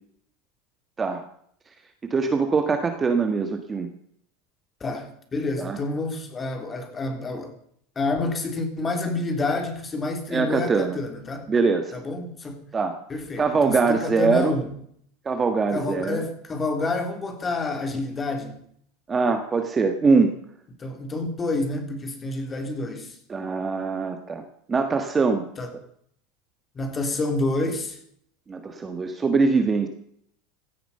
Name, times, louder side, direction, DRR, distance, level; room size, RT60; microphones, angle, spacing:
voice 1, 2.0-3.9 5.6-5.8 10.3-11.0 11.5-12.0 12.7-13.0 13.4-14.5 15.2-16.2 19.1-20.4 23.3-25.5 28.5-29.9, right 4 dB, 15° right, 1.5 m, -23 dB
voice 2, 4.8-7.5 7.9-11.5 11.9-12.6 13.1-14.7 15.7-18.6 20.8-23.1 25.6-25.7 26.7-28.0, left 2 dB, 20° left, 3.4 m, -28 dB
17.0 x 13.5 x 5.6 m
supercardioid pair, 150°, 0 cm